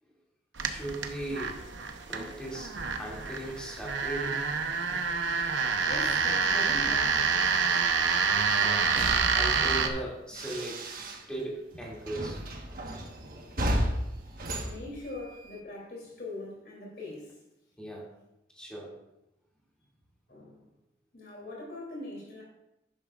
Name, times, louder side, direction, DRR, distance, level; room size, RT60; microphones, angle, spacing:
voice 1, 0.6-1.6 2.1-4.5 8.2-8.9 9.3-10.9 11.3-12.7 17.8-18.1 18.5-18.9, right 1 dB, 5° left, 2.5 m, -38 dB
sound 1, 0.6-9.9, right 5 dB, 90° right, 0.9 m, -27 dB
voice 2, 5.8-7.4 8.0-8.6 14.6-17.4 20.3-20.6 21.1-22.4, left 2 dB, 55° left, 3.1 m, -42 dB
sound 2, 8.5-11.5 11.7-15.6, right 1 dB, 50° right, 1.3 m, -35 dB
11.0 x 10.5 x 2.5 m
head